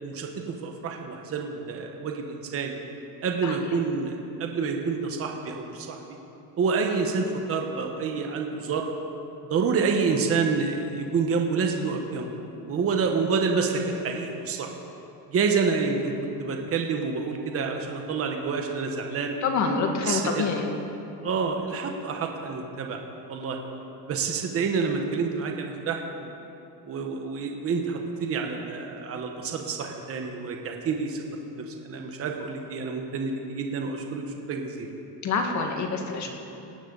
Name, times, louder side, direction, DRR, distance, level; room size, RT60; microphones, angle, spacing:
voice 1, 0.0-2.8 3.2-6.0 6.6-8.9 9.5-12.3 12.6-14.7 15.3-16.1 16.4-19.4 20.0-20.5 21.2-23.6 24.0-26.3 26.9-31.2 31.6-34.9, right 5 dB, 30° right, 2 dB, 1.3 m, -28 dB
voice 2, 19.4-20.7 35.2-36.3, left 4 dB, 35° left, 3 dB, 1.9 m, -26 dB
18.5 x 17.0 x 4.1 m, 2.9 s
cardioid pair, 155°, 47 cm